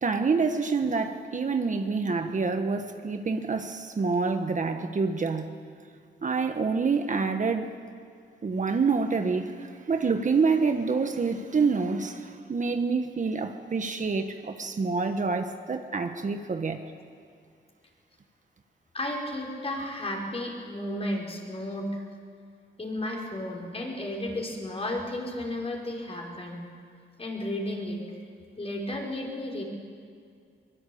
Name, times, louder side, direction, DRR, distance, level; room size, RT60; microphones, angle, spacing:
voice 1, 0.0-5.5 6.2-7.7 8.4-16.8, right 4 dB, 40° right, 6 dB, 1.4 m, -27 dB
voice 2, 18.9-22.0 22.8-26.6 27.2-28.0 28.6-29.6, left 1 dB, 30° left, -1 dB, 5.4 m, -33 dB
23.5 x 21.5 x 8.7 m, 2.2 s
cardioid pair, 100°, 20 cm